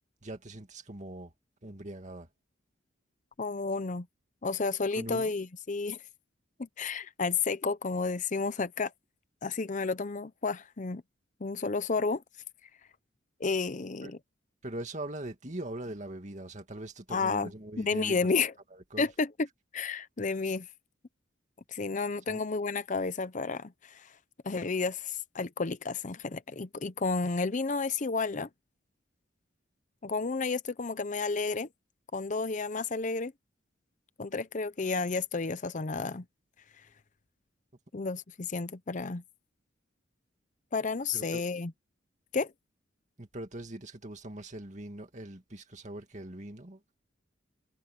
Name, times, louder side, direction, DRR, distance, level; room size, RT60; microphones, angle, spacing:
voice 1, 0.2-1.3 1.6-2.3 4.9-5.3 14.0-14.1 14.6-18.3 18.7-19.1 22.3-22.4 41.1-41.4 43.2-46.9, right 1 dB, 40° right, 2.4 m, -41 dB
voice 2, 3.4-4.1 4.4-6.0 6.6-8.9 9.4-11.0 11.4-12.2 13.4-14.2 17.1-17.5 17.8-18.5 19.0-19.3 19.7-20.7 21.7-24.1 24.4-28.5 30.0-31.7 32.1-33.3 34.2-36.2 37.9-39.2 40.7-41.7 42.3-42.5, left 4 dB, 40° left, 0.6 m, -31 dB
head